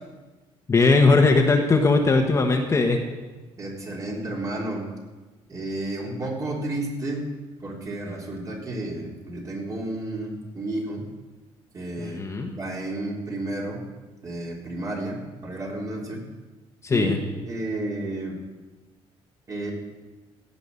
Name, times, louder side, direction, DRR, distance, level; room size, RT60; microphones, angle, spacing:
voice 1, 0.7-3.0 12.0-12.5 16.8-17.2, left 3 dB, 25° left, 3 dB, 1.4 m, -19 dB
voice 2, 3.6-4.9 5.5-7.3 7.6-11.0 11.7-13.8 14.2-16.2 16.9-17.1 17.5-18.4 19.5-19.7, right 1 dB, 35° right, -2 dB, 3.5 m, -31 dB
16.5 x 5.9 x 8.3 m, 1.2 s
cardioid pair, 120°, 11 cm